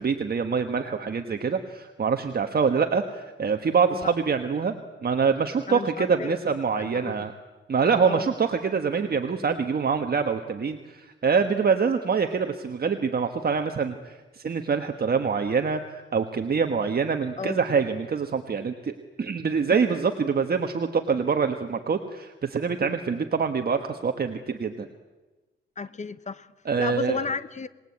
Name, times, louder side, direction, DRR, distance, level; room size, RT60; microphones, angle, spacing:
voice 1, 0.0-4.7 5.0-7.3 7.7-18.9 19.2-24.9 26.6-27.2, right 5 dB, 45° right, 6 dB, 1.4 m, -25 dB
voice 2, 5.7-6.4 6.7-7.3 8.0-8.3 17.4-17.6 25.8-27.7, left 5 dB, 35° left, 15 dB, 1.0 m, -33 dB
27.0 x 20.0 x 8.6 m, 1.2 s
wide cardioid pair, 150°, 21 cm